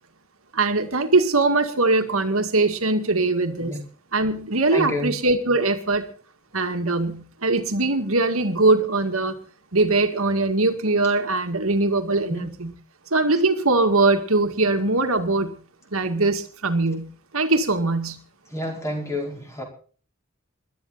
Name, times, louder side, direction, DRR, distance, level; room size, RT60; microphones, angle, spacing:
voice 1, 0.5-3.7 4.1-6.0 6.5-9.3 9.7-12.7 13.1-15.6 15.9-17.1 17.3-18.2, right 3 dB, 75° right, 6 dB, 2.2 m, -21 dB
voice 2, 4.7-5.1 12.3-12.5 18.5-19.6, left 1 dB, 15° left, 1 dB, 4.8 m, -29 dB
21.0 x 12.5 x 4.2 m, 0.42 s
head